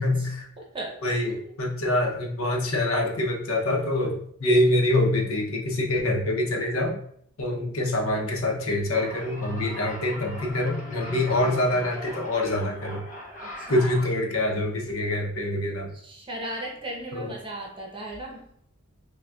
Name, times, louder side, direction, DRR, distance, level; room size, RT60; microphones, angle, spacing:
voice 1, 0.0-0.5 1.0-7.0 7.4-13.0 13.7-15.9 17.1-17.3, left 1 dB, 85° left, 1 dB, 0.8 m, -25 dB
voice 2, 0.6-1.3 13.4-13.9 16.0-18.5, right 1 dB, 25° right, -1 dB, 0.8 m, -37 dB
sound 1, 8.9-14.1, equal, 40° left, 0.9 m, -40 dB
5.9 x 2.3 x 2.3 m, 0.66 s
head